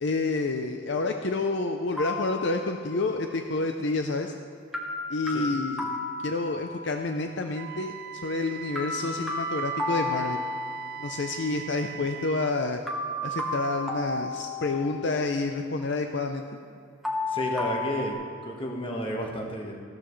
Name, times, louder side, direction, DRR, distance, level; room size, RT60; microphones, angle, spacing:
voice 1, 0.0-4.3 5.1-7.9 8.2-10.4 11.0-12.8 13.2-16.4, left 3 dB, 60° left, 5 dB, 0.6 m, -29 dB
sound 1, 2.0-3.1 4.7-7.0 8.7-11.1 12.9-15.2 17.0-18.1, left 2 dB, ahead, 1.0 m, -32 dB
Wind instrument woodwind instrument, 7.5-12.6, right 10 dB, 45° right, 0.3 m, -41 dB
voice 2, 17.3-19.8, equal, 25° left, 1 dB, 1.3 m, -32 dB
14.5 x 12.5 x 3.2 m, 2.5 s
head